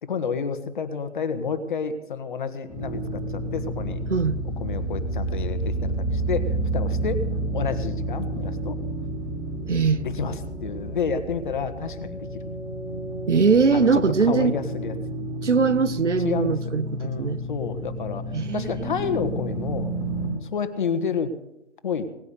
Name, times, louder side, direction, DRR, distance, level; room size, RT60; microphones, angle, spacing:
voice 1, 0.0-4.0 4.6-7.2 7.5-8.8 10.0-12.4 13.7-14.9 15.5-15.6 16.2-16.7 17.0-18.2 18.5-19.9 20.4-21.3 21.8-22.1, left 6 dB, 45° left, 1.6 m, -30 dB
sound 1, 2.7-20.3, right 1 dB, 5° right, 5.3 m, -30 dB
voice 2, 9.7-10.0 13.3-14.5 15.4-17.4 18.3-19.0, right 5 dB, 80° right, 1.2 m, -21 dB
19.0 x 9.6 x 6.7 m
figure-of-eight pair, 145°, 35 cm